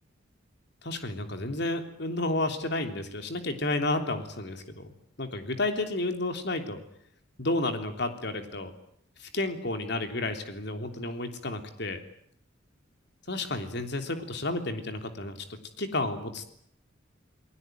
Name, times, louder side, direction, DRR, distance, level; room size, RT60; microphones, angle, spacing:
voice 1, 0.8-4.9 5.2-6.8 7.4-8.7 9.2-12.0 13.3-15.4 15.8-16.6, left 2 dB, 60° left, 7 dB, 3.4 m, -31 dB
29.0 x 19.5 x 9.3 m, 0.67 s
head